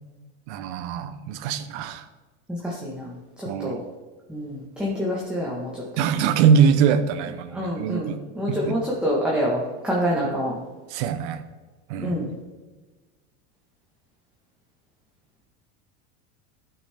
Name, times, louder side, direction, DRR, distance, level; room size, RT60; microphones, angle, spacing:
voice 1, 0.5-2.0 3.4-3.8 6.0-8.2 8.5-8.8 10.9-11.4 11.9-12.2, right 7 dB, 70° right, 11 dB, 0.9 m, -23 dB
voice 2, 2.5-3.8 4.3-5.8 7.5-10.6 12.0-12.3, equal, 5° right, -5 dB, 1.5 m, -27 dB
12.0 x 6.1 x 3.6 m, 1.3 s
supercardioid pair, 125°, 35 cm